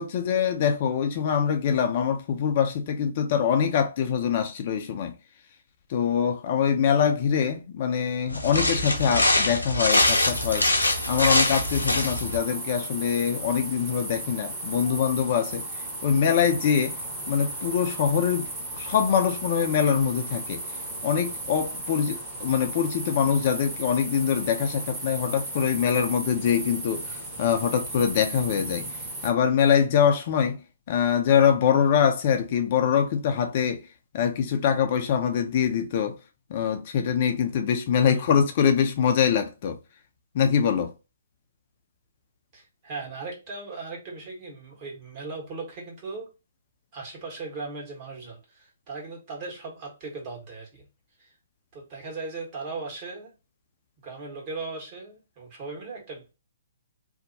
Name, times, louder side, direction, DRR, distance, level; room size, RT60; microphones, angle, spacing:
voice 1, 0.0-5.1 5.9-15.6 16.0-17.0 17.3-20.6 21.0-28.9 29.2-30.6 30.9-33.8 34.1-36.2 36.5-39.8 40.3-40.9, left 7 dB, 40° left, 0.4 m, -24 dB
sound 1, 8.3-12.4, left 2 dB, 85° left, 0.7 m, -23 dB
sound 2, 9.9-29.3, right 1 dB, 20° right, 1.0 m, -35 dB
voice 2, 38.0-38.3 42.5-46.3 46.9-50.9 51.2-51.3 51.7-53.3 54.0-56.3, right 3 dB, 35° right, 1.3 m, -38 dB
2.7 x 2.1 x 2.7 m
figure-of-eight pair, 130°, 0 cm